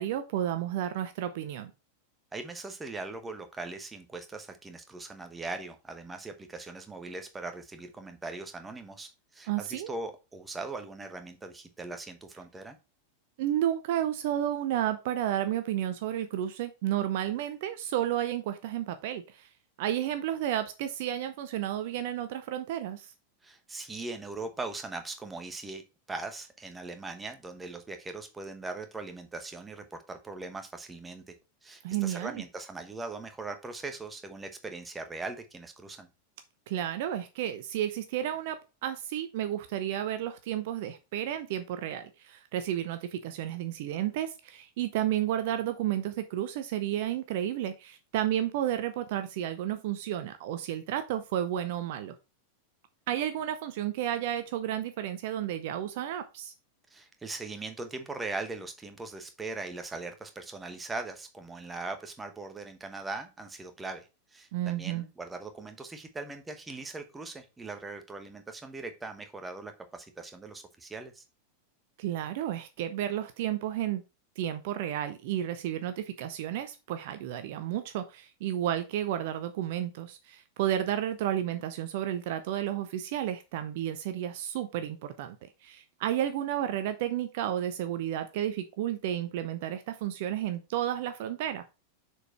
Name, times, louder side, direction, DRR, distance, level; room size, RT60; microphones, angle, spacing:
voice 1, 0.0-1.7 9.5-9.9 13.4-19.5 19.8-23.1 31.8-32.4 36.7-52.1 53.1-56.5 64.5-65.0 72.0-74.0 74.4-85.4 85.6-91.6, right 11 dB, 50° right, 0.7 m, -32 dB
voice 2, 2.3-12.8 23.4-25.8 26.1-31.3 31.6-36.1 56.9-71.2, right 3 dB, 10° right, 1.2 m, -40 dB
6.7 x 4.6 x 4.5 m
figure-of-eight pair, 90°, 0 cm